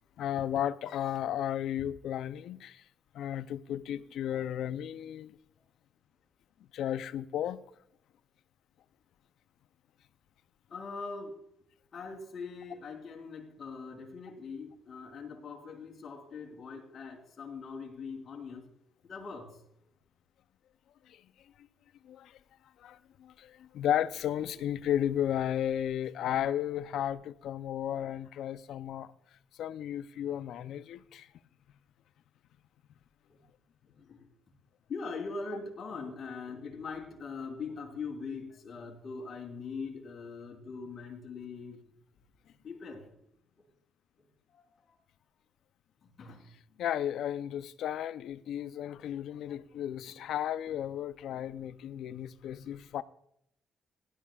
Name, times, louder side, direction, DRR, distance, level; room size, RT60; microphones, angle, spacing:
voice 1, 0.2-2.8 3.1-5.4 6.7-7.6 21.1-21.2 22.0-22.4 22.8-29.1 29.5-31.3 46.8-53.0, left 10 dB, 75° left, 0.5 m, -34 dB
voice 2, 10.7-11.4 11.9-18.7 19.0-19.6 33.3-33.5 33.9-34.3 34.9-41.8 42.4-43.1 44.2-45.0 46.0-46.5 48.9-49.0 49.5-49.6 50.1-50.2 50.6-50.7 51.3-51.5, left 4 dB, 50° left, 3.9 m, -42 dB
17.5 x 12.0 x 2.3 m
cardioid pair, 90°, 0 cm